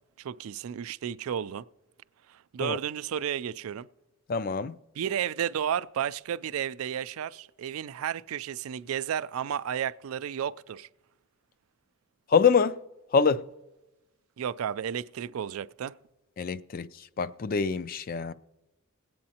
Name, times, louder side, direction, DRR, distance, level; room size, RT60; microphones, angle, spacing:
voice 1, 0.2-1.6 2.3-3.9 5.0-10.9 14.4-15.9, right 9 dB, 75° right, 0.3 m, -32 dB
voice 2, 4.3-4.8 12.3-12.8 13.1-13.4 16.4-16.9 17.2-18.3, left 5 dB, 40° left, 0.3 m, -25 dB
21.0 x 8.6 x 2.8 m
head